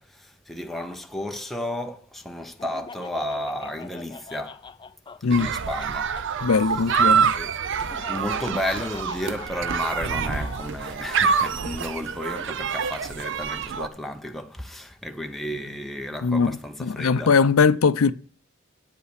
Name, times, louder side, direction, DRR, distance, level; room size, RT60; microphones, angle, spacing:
voice 1, 0.0-4.6 5.3-6.1 7.3-7.5 8.1-17.3, left 1 dB, ahead, 0.7 m, -33 dB
Laughter, 2.6-6.3 7.8-10.7, left 4 dB, 20° left, 0.3 m, -42 dB
sound 1, 5.3-13.9, right 6 dB, 60° right, 0.6 m, -26 dB
voice 2, 6.4-7.3 16.2-18.1, left 5 dB, 80° left, 0.5 m, -20 dB
9.0 x 5.6 x 6.5 m
head